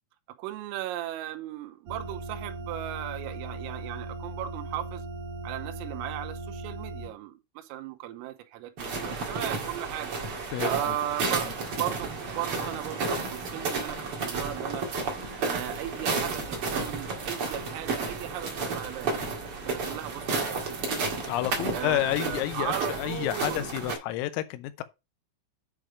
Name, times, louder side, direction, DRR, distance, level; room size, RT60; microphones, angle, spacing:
voice 1, 0.4-5.0 5.4-10.2 10.6-14.9 15.4-19.1 19.7-21.0 21.7-23.7, right 13 dB, 90° right, 3.5 m, -36 dB
sound 1, 1.9-7.1, right 2 dB, 45° right, 2.6 m, -38 dB
sound 2, 8.8-24.0, right 4 dB, 70° right, 1.3 m, -32 dB
voice 2, 10.5-11.0 11.2-11.5 21.3-24.8, left 15 dB, 85° left, 3.5 m, -30 dB
8.8 x 5.0 x 5.1 m
omnidirectional pair, 5.9 m